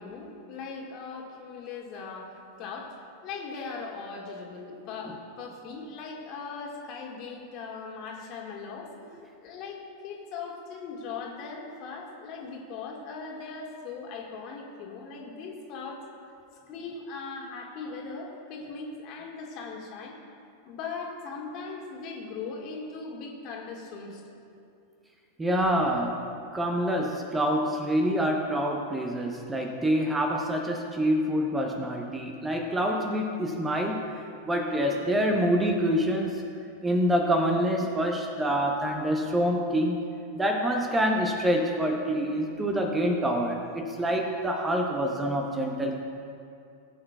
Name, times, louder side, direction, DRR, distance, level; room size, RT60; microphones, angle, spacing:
voice 1, 0.0-2.9 3.2-16.0 16.7-20.2 20.7-24.4, left 4 dB, 40° left, -1 dB, 1.9 m, -39 dB
voice 2, 25.4-26.2 26.5-34.0 34.4-36.4 36.8-40.0 40.3-46.0, equal, 10° right, 2 dB, 0.9 m, -26 dB
19.0 x 8.7 x 2.4 m, 2.5 s
figure-of-eight pair, 90°, 0 cm